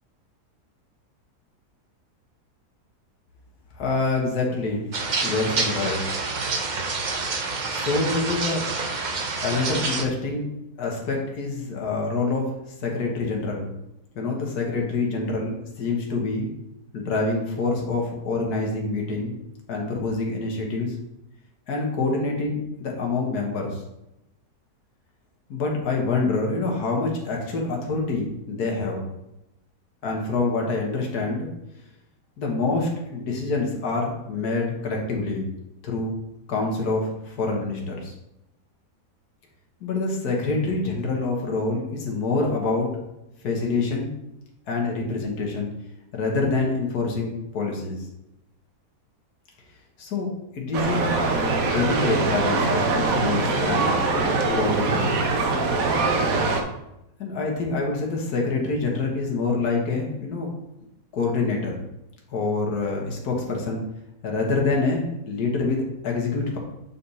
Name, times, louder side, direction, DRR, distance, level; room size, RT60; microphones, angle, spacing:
voice 1, 3.8-4.9 5.2-6.2 7.7-8.7 9.4-10.5 10.8-12.5 12.8-13.7 14.2-16.5 16.9-19.4 19.7-20.9 21.7-23.8 25.5-29.1 30.0-31.5 32.4-35.5 35.8-36.1 36.5-38.1 39.8-42.9 43.4-44.1 44.7-45.7 46.1-48.1 50.0-51.1 51.6-53.9 54.6-55.2 57.2-60.5 61.1-61.8 62.3-63.8 64.2-66.6, left 3 dB, 75° left, 0 dB, 1.7 m, -26 dB
sound 1, 4.9-10.0, right 4 dB, 90° right, 0.4 m, -27 dB
sound 2, 50.7-56.6, right 3 dB, 65° right, 1.2 m, -23 dB
7.1 x 4.2 x 4.1 m, 0.88 s
omnidirectional pair, 1.7 m